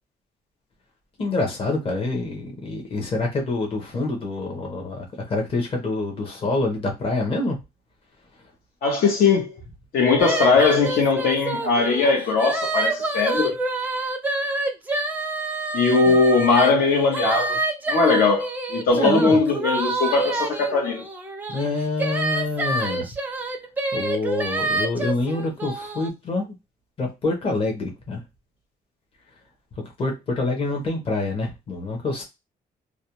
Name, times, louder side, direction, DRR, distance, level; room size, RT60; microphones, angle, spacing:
voice 1, 1.2-7.6 16.1-16.2 19.0-19.4 21.5-23.1 23.9-26.5 27.0-28.2 29.8-32.2, left 2 dB, 35° left, 0.8 m, -26 dB
voice 2, 8.8-9.5 9.9-13.5 15.7-17.6 17.9-21.0, left 4 dB, 75° left, 0.9 m, -19 dB
sound 1, 10.2-16.7 17.1-26.1, right 2 dB, 10° right, 0.4 m, -27 dB
2.4 x 2.1 x 2.9 m
cardioid pair, 135°, 16 cm